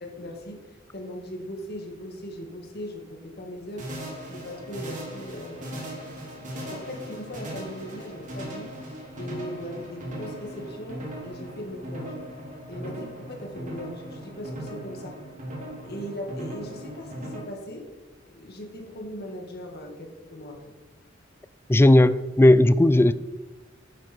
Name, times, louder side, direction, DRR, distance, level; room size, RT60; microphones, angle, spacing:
voice 1, 0.0-3.9 4.3-6.3 6.7-12.2 12.7-15.2 15.8-17.9 18.3-20.7, equal, 55° left, 2 dB, 2.2 m, -39 dB
sound 1, 3.8-17.4, right 1 dB, 40° right, 2.8 m, -38 dB
voice 2, 21.7-23.1, left 1 dB, 10° left, 15 dB, 0.3 m, -16 dB
11.0 x 9.8 x 4.6 m, 1.2 s
head